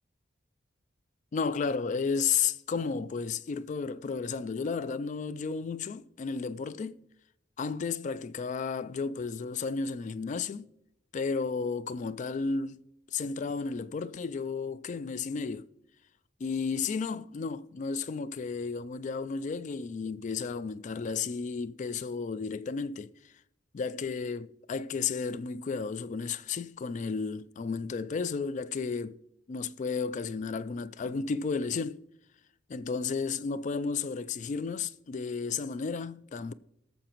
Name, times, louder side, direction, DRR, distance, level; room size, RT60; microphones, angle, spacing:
voice 1, 1.3-7.0 7.6-10.7 11.1-12.8 13.1-15.7 16.4-23.1 23.7-29.2 29.5-32.0 32.7-36.5, left 5 dB, 40° left, 0.3 m, -33 dB
19.5 x 6.9 x 3.0 m
head